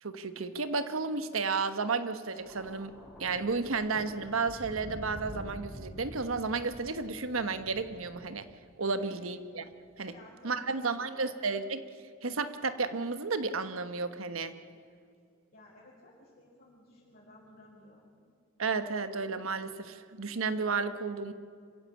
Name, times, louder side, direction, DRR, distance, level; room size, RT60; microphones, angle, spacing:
voice 1, 0.0-2.9 3.2-8.5 8.8-9.6 10.0-10.1 10.4-11.9 12.2-14.5 18.6-21.3, right 4 dB, 80° right, 10 dB, 1.2 m, -32 dB
Thunder, 2.4-8.7 9.7-10.0, equal, 5° left, 5.8 m, -47 dB
voice 2, 8.9-9.3 10.1-11.3 15.5-18.1, left 1 dB, 50° left, -7 dB, 5.3 m, -55 dB
26.5 x 15.5 x 8.7 m, 2.2 s
head